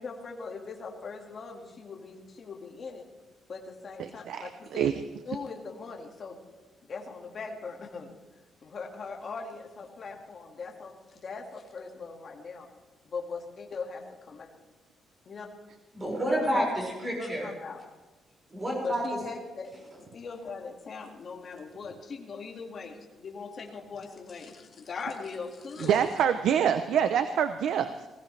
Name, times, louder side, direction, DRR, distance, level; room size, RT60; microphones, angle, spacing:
voice 1, 0.0-3.0 3.5-4.9 5.3-6.4 6.9-8.1 8.6-12.7 13.0-14.5 15.3-15.5 16.4-16.7 17.2-17.8 18.8-19.7 20.1-26.0, left 4 dB, 40° left, 1 dB, 2.1 m, -40 dB
voice 2, 4.3-4.9 25.8-27.9, right 8 dB, 75° right, 9 dB, 0.6 m, -25 dB
voice 3, 15.9-17.5 18.5-19.0, right 1 dB, 20° right, -2 dB, 5.7 m, -29 dB
19.5 x 16.5 x 3.4 m, 1.2 s
cardioid pair, 150°, 0 cm